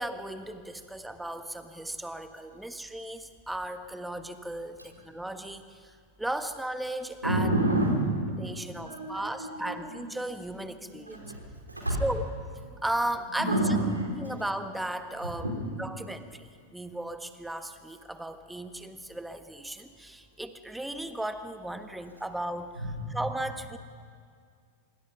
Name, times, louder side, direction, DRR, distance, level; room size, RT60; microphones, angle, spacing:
voice 1, 0.0-7.5 8.4-11.2 12.0-12.2 12.8-13.6 14.1-15.5 15.8-22.7 23.1-23.8, right 1 dB, 5° right, 9 dB, 1.4 m, -36 dB
voice 2, 7.2-8.2 8.6-10.0 10.9-11.4 11.7-12.0 13.3-14.1 15.4-15.6 22.8-23.2, right 1 dB, 85° right, 0 dB, 4.3 m, -29 dB
25.5 x 23.5 x 5.8 m, 2.1 s
figure-of-eight pair, 90°, 0 cm